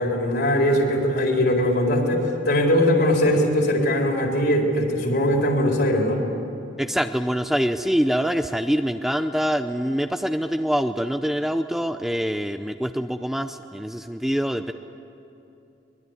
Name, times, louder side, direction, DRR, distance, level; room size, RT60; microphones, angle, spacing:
voice 1, 0.0-6.2, left 1 dB, 60° left, 1 dB, 4.3 m, -21 dB
voice 2, 6.8-14.7, equal, ahead, 8 dB, 0.6 m, -25 dB
23.0 x 21.5 x 9.8 m, 2.8 s
head